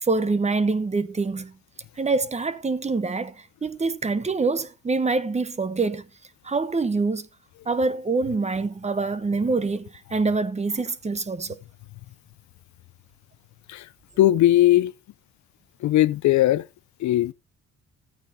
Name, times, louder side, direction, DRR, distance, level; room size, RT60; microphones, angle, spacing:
voice 1, 0.0-1.5 2.0-6.0 6.4-7.3 7.7-11.6, right 3 dB, 20° right, 0.9 m, -25 dB
voice 2, 14.2-14.9 15.8-16.6 17.0-17.3, left 14 dB, 70° left, 0.5 m, -19 dB
14.0 x 8.9 x 2.7 m
cardioid pair, 90°, 30 cm